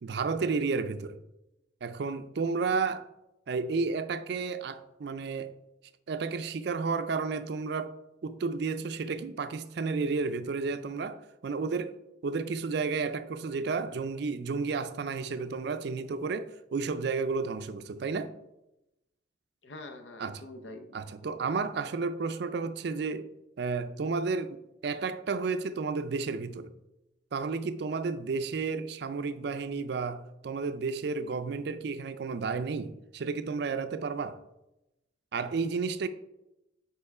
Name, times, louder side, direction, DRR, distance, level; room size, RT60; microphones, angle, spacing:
voice 1, 0.0-1.2 1.8-3.0 3.5-5.5 6.1-8.0 8.2-11.9 12.2-18.3 20.2-20.4 20.9-23.3 23.6-24.6 24.8-26.7 27.3-34.4 35.3-36.1, right 4 dB, 60° right, 0.4 m, -32 dB
voice 2, 19.6-20.9, left 2 dB, 75° left, 0.7 m, -45 dB
5.4 x 4.5 x 4.7 m
head